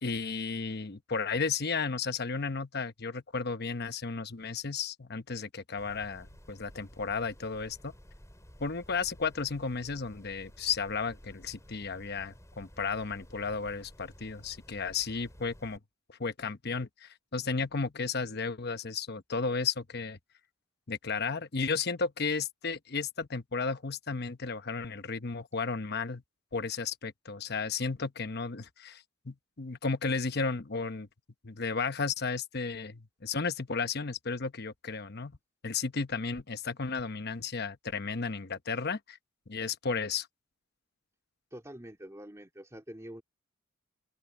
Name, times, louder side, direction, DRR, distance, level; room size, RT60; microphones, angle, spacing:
voice 1, 0.0-7.9 8.6-15.8 16.1-20.2 20.9-26.2 26.5-31.1 31.4-35.4 35.6-39.2 39.5-40.3, left 4 dB, 50° left, 1.0 m, -34 dB
sound 1, 5.8-15.8, equal, 15° left, 6.8 m, -54 dB
voice 2, 41.5-43.2, equal, 15° right, 2.6 m, -46 dB
head